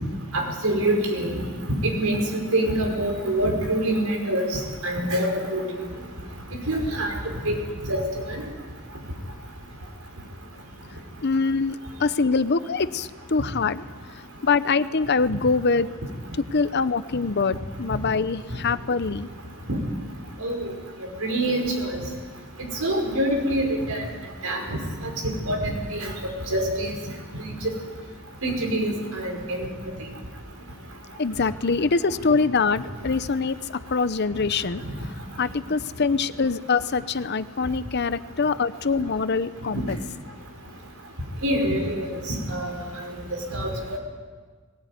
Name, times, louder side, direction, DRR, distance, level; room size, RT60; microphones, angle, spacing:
voice 1, 0.3-1.4 1.8-5.6 6.7-7.2 7.4-7.5 7.9-8.4 19.7-19.8 20.4-20.7 21.2-22.0 22.8-24.0 24.4-26.1 26.5-26.9 27.4-27.5 28.4-29.7 41.4-42.7 43.5-43.7, right 1 dB, 80° right, 2 dB, 5.4 m, -25 dB
voice 2, 11.2-13.8 14.4-15.9 16.5-19.3 31.2-33.6 33.9-34.8 35.1-40.0, left 4 dB, 50° left, 14 dB, 0.7 m, -24 dB
19.5 x 19.0 x 9.5 m, 1.5 s
head